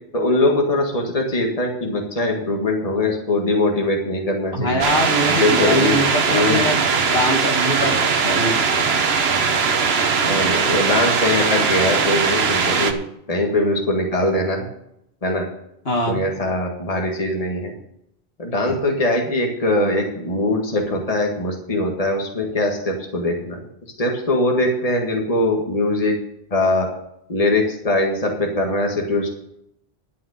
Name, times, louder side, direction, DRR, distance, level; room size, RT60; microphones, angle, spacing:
voice 1, 0.1-4.8 5.3-5.9 6.3-6.6 10.2-13.0 13.3-14.7 15.2-15.5 16.1-17.7 18.4-23.6 24.0-26.2 26.5-26.9 27.3-29.3, left 1 dB, 35° left, 1 dB, 1.9 m, -21 dB
voice 2, 4.5-8.8 15.9-16.2, equal, 70° left, 0 dB, 2.4 m, -23 dB
sound 1, 4.8-12.9, right 5 dB, 75° right, 1.3 m, -20 dB
11.5 x 5.6 x 8.1 m, 0.76 s
omnidirectional pair, 1.1 m